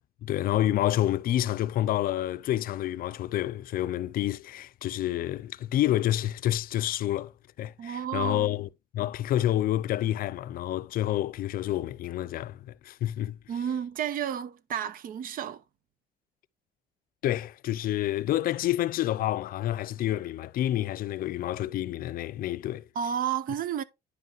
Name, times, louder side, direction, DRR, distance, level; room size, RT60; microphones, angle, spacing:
voice 1, 0.2-7.3 7.6-13.4 17.2-22.9, left 13 dB, 60° left, 0.5 m, -28 dB
voice 2, 7.8-8.6 13.5-15.6 22.9-23.8, right 9 dB, 55° right, 0.8 m, -31 dB
9.8 x 5.5 x 3.1 m
cardioid pair, 110°, 17 cm